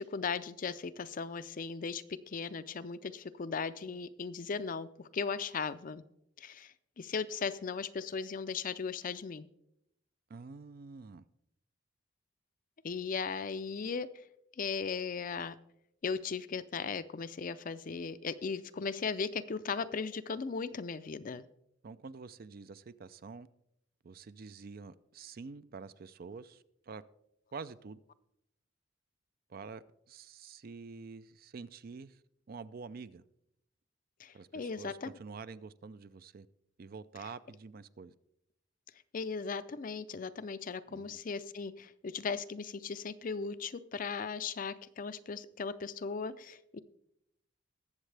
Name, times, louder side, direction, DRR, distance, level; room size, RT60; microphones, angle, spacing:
voice 1, 0.0-6.0 6.4-9.5 12.8-14.1 14.6-15.5 16.0-21.4 34.2-35.1 39.1-46.8, left 5 dB, 45° left, 0.5 m, -37 dB
voice 2, 10.3-11.2 21.8-23.5 24.0-27.0 27.5-28.0 29.5-32.2 32.5-33.2 34.3-36.5 36.8-38.1 40.9-41.2, right 4 dB, 50° right, 0.4 m, -47 dB
20.5 x 7.3 x 3.3 m
head